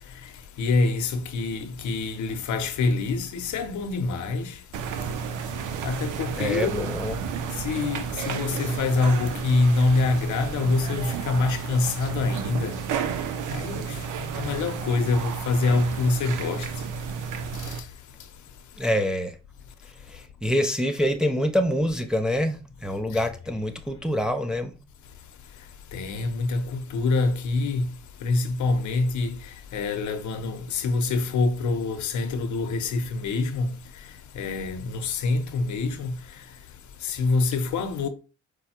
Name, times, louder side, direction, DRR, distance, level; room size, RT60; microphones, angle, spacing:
voice 1, 0.6-4.6 5.8-6.9 7.6-12.8 13.5-16.7 17.5-17.9 23.1-23.2 25.9-27.9 28.2-33.8 34.3-36.2 37.0-38.1, left 3 dB, 70° left, 0.8 m, -25 dB
sound 1, 4.7-17.8, right 6 dB, 85° right, 0.7 m, -32 dB
voice 2, 6.4-7.2 18.8-19.4 20.1-24.8, equal, ahead, 0.5 m, -26 dB
4.9 x 2.2 x 4.3 m
cardioid pair, 90°, 30 cm